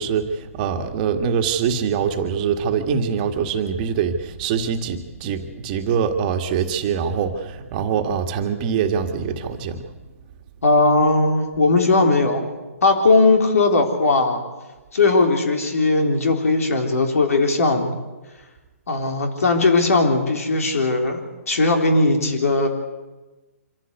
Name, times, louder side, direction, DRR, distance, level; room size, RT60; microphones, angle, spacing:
voice 1, 0.0-9.9, right 7 dB, 35° right, 5 dB, 1.8 m, -24 dB
voice 2, 10.6-12.5 12.8-14.4 14.9-17.9 18.9-21.2 21.5-22.7, left 3 dB, 75° left, 4 dB, 3.9 m, -18 dB
25.5 x 14.5 x 8.2 m, 1.2 s
hypercardioid pair, 140°, 8 cm